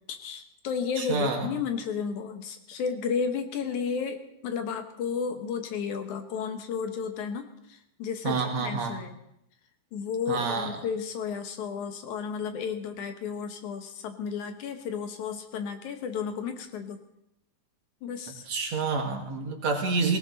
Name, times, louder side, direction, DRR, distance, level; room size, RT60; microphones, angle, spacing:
voice 1, 0.1-9.2 9.9-17.0 18.0-18.4, left 6 dB, 70° left, 7 dB, 2.5 m, -33 dB
voice 2, 1.0-1.5 8.2-9.0 10.3-10.7 18.5-20.2, right 4 dB, 60° right, 2 dB, 3.1 m, -28 dB
18.5 x 18.0 x 4.0 m, 0.77 s
omnidirectional pair, 3.7 m